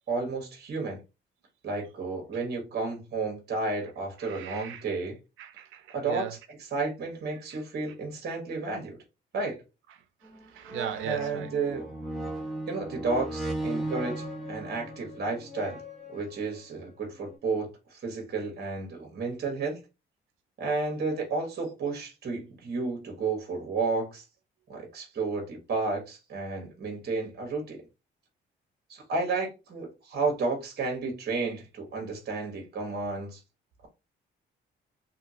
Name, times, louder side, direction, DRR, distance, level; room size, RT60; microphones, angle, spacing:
voice 1, 0.1-1.0 1.6-5.2 5.9-6.2 6.7-9.0 9.3-9.6 11.0-11.8 12.7-15.8 16.1-19.8 20.6-24.2 24.7-27.8 28.9-33.4, right 3 dB, 55° right, 1.3 m, -32 dB
voice 2, 4.2-4.9 5.4-6.3 7.5-7.6 10.4-11.5, right 11 dB, 85° right, 0.6 m, -37 dB
sound 1, 10.2-10.4 10.7-16.6 17.2-17.3, right 1 dB, ahead, 1.1 m, -36 dB
2.8 x 2.7 x 2.8 m
cardioid pair, 90°, 20 cm